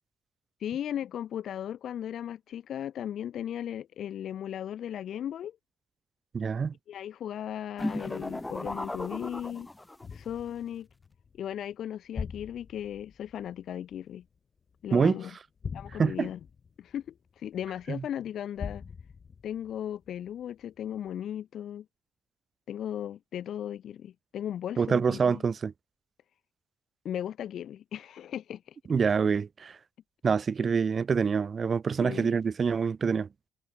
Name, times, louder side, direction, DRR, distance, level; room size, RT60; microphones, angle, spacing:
voice 1, 0.6-5.6 6.9-9.7 10.1-10.9 11.3-14.2 14.8-15.3 15.7-16.4 16.8-18.8 19.4-21.9 22.7-25.4 27.0-28.8 30.6-30.7 32.0-32.4, left 10 dB, 60° left, 1.0 m, -36 dB
voice 2, 6.3-6.7 14.9-15.2 16.0-16.3 24.8-25.7 28.9-29.8 30.2-33.3, right 6 dB, 35° right, 0.6 m, -26 dB
sound 1, 7.8-10.2, left 1 dB, 10° left, 0.6 m, -35 dB
sound 2, 10.0-15.0 15.6-18.0 18.6-20.6 21.1-21.2, left 6 dB, 35° left, 1.9 m, -43 dB
cardioid pair, 145°, 0 cm